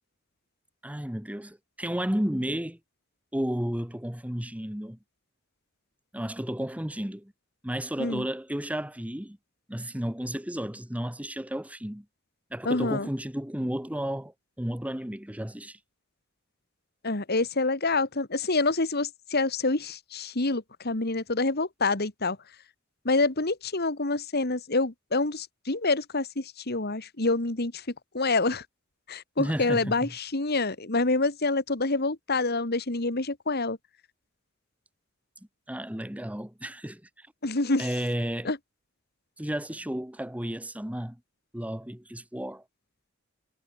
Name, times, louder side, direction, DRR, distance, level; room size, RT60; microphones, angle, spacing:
voice 1, 0.8-2.8 3.3-5.0 6.1-7.3 7.6-9.4 9.7-12.0 12.5-15.8 29.4-30.1 35.7-37.3 37.8-38.5 39.4-41.2 41.5-42.6, equal, 5° right, 1.4 m, -32 dB
voice 2, 12.6-13.1 17.0-22.4 23.0-27.8 28.1-28.7 29.1-33.8 37.4-37.9 38.4-38.6, left 3 dB, 50° left, 2.2 m, -27 dB
head